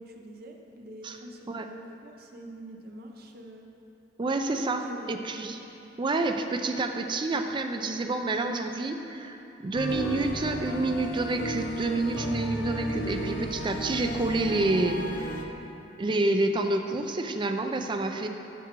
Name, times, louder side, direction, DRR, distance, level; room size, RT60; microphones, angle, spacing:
voice 1, 0.0-3.7 4.7-5.1 5.4-5.5, right 1 dB, 55° right, 2 dB, 0.7 m, -45 dB
voice 2, 4.2-5.6 6.0-15.3 16.0-18.3, right 2 dB, 25° right, 5 dB, 0.4 m, -28 dB
sound 1, 9.7-15.4, equal, 80° left, 0.6 m, -34 dB
10.0 x 6.2 x 2.9 m, 2.9 s
head